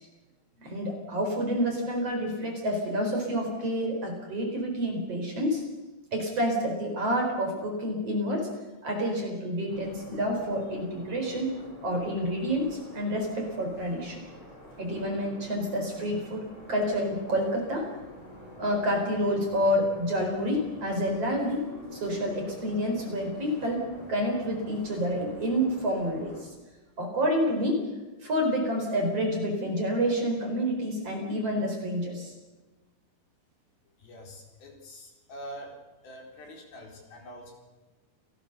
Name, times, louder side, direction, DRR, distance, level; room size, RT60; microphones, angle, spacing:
voice 1, 0.6-5.6 6.1-8.5 8.8-11.5 11.8-14.2 14.8-17.9 18.6-26.5 27.0-27.8 28.2-32.3, equal, 35° right, 2 dB, 5.0 m, -28 dB
sound 1, 9.7-26.4, equal, 35° left, 8.2 m, -47 dB
voice 2, 34.0-35.8 36.0-37.5, equal, 60° left, 1 dB, 5.8 m, -45 dB
29.0 x 18.5 x 6.8 m, 1.2 s
omnidirectional pair, 5.0 m